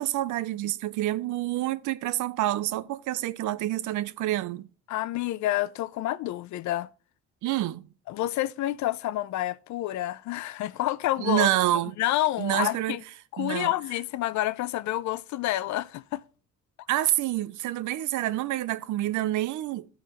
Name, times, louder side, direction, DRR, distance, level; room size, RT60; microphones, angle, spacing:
voice 1, 0.0-4.7 7.4-7.9 11.2-12.0 12.4-13.0 13.4-13.7 16.9-19.9, right 14 dB, 80° right, 0.6 m, -27 dB
voice 2, 4.9-6.9 8.1-11.5 12.0-13.0 13.3-16.2, left 14 dB, 70° left, 0.4 m, -28 dB
14.0 x 4.7 x 2.9 m
cardioid pair, 90°, 30 cm